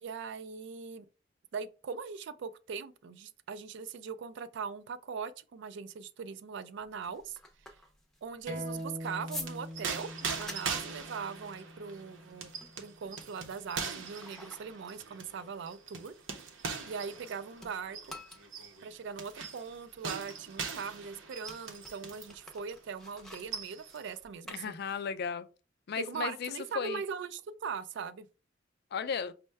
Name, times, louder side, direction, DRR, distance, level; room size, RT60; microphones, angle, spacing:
voice 1, 0.0-1.1 1.5-7.4 7.7-7.8 8.2-12.5 12.8-16.4 16.9-18.2 18.8-24.7 26.0-28.3, right 6 dB, 65° right, 0.3 m, -41 dB
sound 1, 6.8-17.3 17.6-25.3, left 1 dB, ahead, 0.6 m, -50 dB
sound 2, 8.5-13.6, equal, 40° right, 0.8 m, -44 dB
sound 3, 9.1-22.4 22.7-22.9 23.2-24.0, right 5 dB, 80° right, 0.7 m, -41 dB
voice 2, 24.5-25.5 25.9-27.0 28.9-29.3, left 6 dB, 55° left, 0.4 m, -35 dB
5.3 x 2.1 x 3.3 m
head